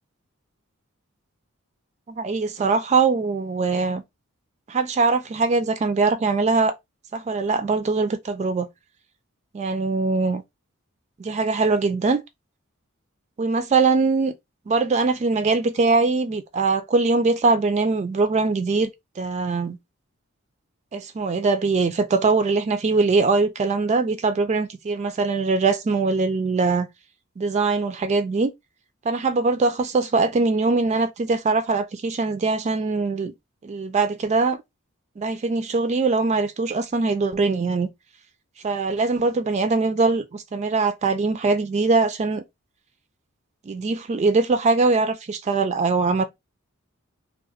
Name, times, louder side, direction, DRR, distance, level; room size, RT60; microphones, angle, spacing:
voice 1, 2.1-4.0 4.7-6.7 7.1-8.7 9.5-10.4 11.2-12.2 13.4-14.3 14.7-18.9 19.2-19.8 20.9-26.9 27.4-28.5 29.1-33.3 33.6-34.6 35.2-37.9 38.6-42.4 43.7-46.2, right 3 dB, 30° right, 0.3 m, -22 dB
2.4 x 2.0 x 3.9 m
head